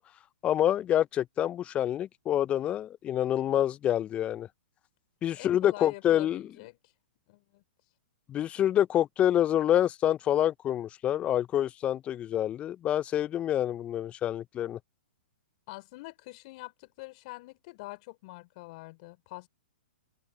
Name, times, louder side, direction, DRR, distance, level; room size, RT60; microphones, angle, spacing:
voice 1, 0.4-4.5 5.2-6.5 8.3-14.8, left 11 dB, 20° left, 0.4 m, -27 dB
voice 2, 5.4-6.9 7.3-7.6 15.7-19.5, left 23 dB, 45° left, 3.9 m, -45 dB
hypercardioid pair, 115°, 5 cm